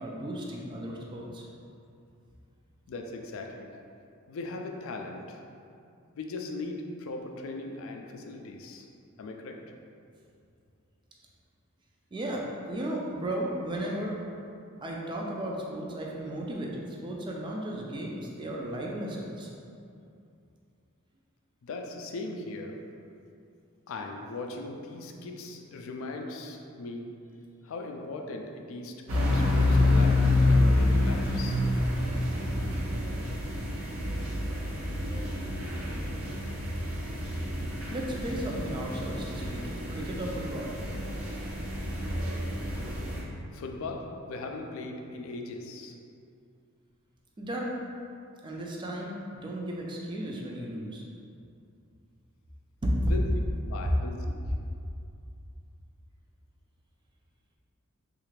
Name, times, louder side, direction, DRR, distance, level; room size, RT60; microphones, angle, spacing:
voice 1, 0.0-1.5 12.1-14.3 14.8-19.5 37.9-40.8 47.4-47.8 48.4-51.0 52.8-53.1, right 1 dB, 20° right, -2 dB, 0.3 m, -34 dB
voice 2, 2.9-3.7 4.3-5.4 6.2-8.9 9.2-9.6 21.6-22.8 23.9-27.1 27.6-31.6 43.5-45.9 53.0-54.4, left 2 dB, 65° left, 3 dB, 0.3 m, -39 dB
sound 1, 29.1-43.2, left 2 dB, 70° right, 0.6 m, -28 dB
3.2 x 2.4 x 3.1 m, 2.5 s
head